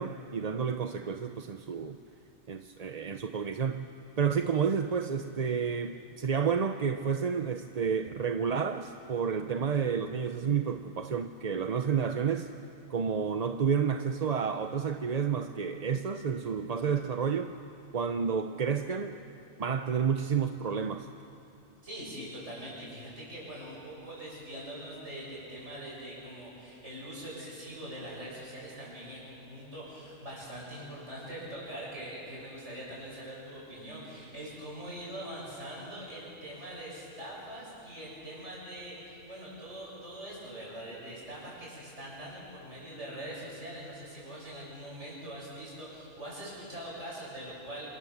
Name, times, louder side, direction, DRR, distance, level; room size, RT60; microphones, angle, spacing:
voice 1, 0.0-2.0 2.5-3.9 4.2-12.5 12.9-17.5 17.9-19.2 19.6-21.1, right 6 dB, 40° right, 7 dB, 0.7 m, -30 dB
voice 2, 21.8-47.9, right 1 dB, 75° right, -6 dB, 8.4 m, -43 dB
27.5 x 26.0 x 7.3 m, 2.7 s
omnidirectional pair, 1.2 m